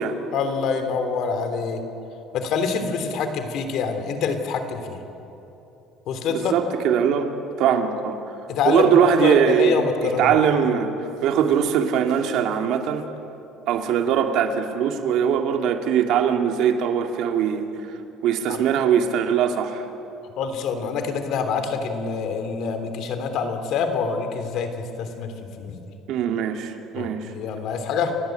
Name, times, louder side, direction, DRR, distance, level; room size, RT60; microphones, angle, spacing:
voice 1, 0.3-1.8 2.3-5.0 6.1-6.5 8.5-10.4 18.5-18.6 20.4-25.8 26.9-28.1, left 5 dB, 60° left, 7 dB, 3.2 m, -26 dB
voice 2, 6.3-7.3 7.6-8.2 8.7-13.1 13.7-17.7 18.2-19.9 26.1-27.3, right 8 dB, 65° right, 5 dB, 2.3 m, -21 dB
30.0 x 16.0 x 9.1 m, 3.0 s
cardioid pair, 130°, 0 cm